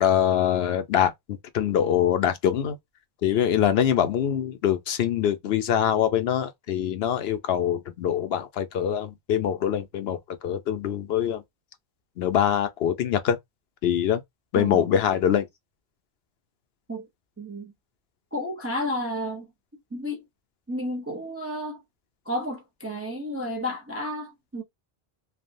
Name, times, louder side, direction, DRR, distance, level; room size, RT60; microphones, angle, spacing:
voice 1, 0.0-2.8 3.2-11.4 12.2-13.4 13.8-14.2 14.5-15.5, left 9 dB, 70° left, 0.8 m, -24 dB
voice 2, 14.5-14.9 16.9-17.1 17.4-17.7 18.3-19.5 19.9-20.3 20.7-21.8 22.3-24.6, equal, 20° right, 0.4 m, -31 dB
3.3 x 2.2 x 2.6 m
omnidirectional pair, 1.1 m